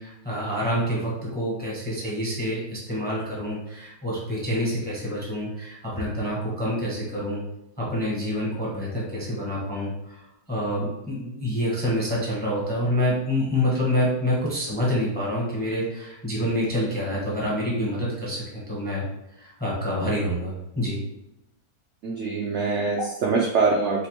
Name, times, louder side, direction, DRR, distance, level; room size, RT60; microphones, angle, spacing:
voice 1, 0.0-7.4 7.8-10.2 10.5-19.1 19.3-21.0 23.0-23.1, equal, 10° left, -5 dB, 0.5 m, -27 dB
voice 2, 22.0-24.1, right 4 dB, 85° right, -2 dB, 0.6 m, -24 dB
5.0 x 2.1 x 2.8 m, 0.90 s
omnidirectional pair, 1.8 m